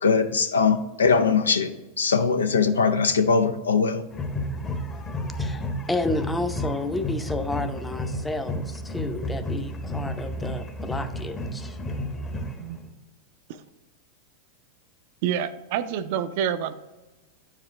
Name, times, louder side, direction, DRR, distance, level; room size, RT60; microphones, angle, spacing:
voice 1, 0.0-4.0, left 5 dB, 90° left, 0.5 m, -21 dB
sound 1, 4.1-12.9, equal, 25° left, 0.9 m, -31 dB
voice 2, 5.4-11.8, left 2 dB, 10° left, 0.6 m, -31 dB
voice 3, 15.2-16.7, right 9 dB, 60° right, 0.5 m, -27 dB
9.0 x 4.9 x 3.2 m
hypercardioid pair, 100°, 0 cm